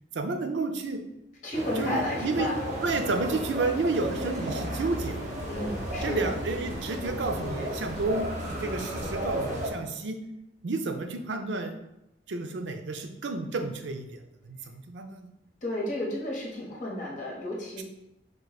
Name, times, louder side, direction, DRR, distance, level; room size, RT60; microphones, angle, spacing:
voice 1, 0.1-1.0 1.8-2.5 2.8-5.2 6.0-10.2 10.6-11.7 12.3-15.3 17.8-17.9, right 3 dB, 85° right, 6 dB, 0.5 m, -31 dB
voice 2, 1.4-2.6 5.4-6.3 15.6-17.8, left 1 dB, 45° left, -4 dB, 1.3 m, -32 dB
sound 1, 1.5-9.7, equal, 45° right, 1.1 m, -33 dB
5.0 x 2.6 x 4.1 m, 0.90 s
head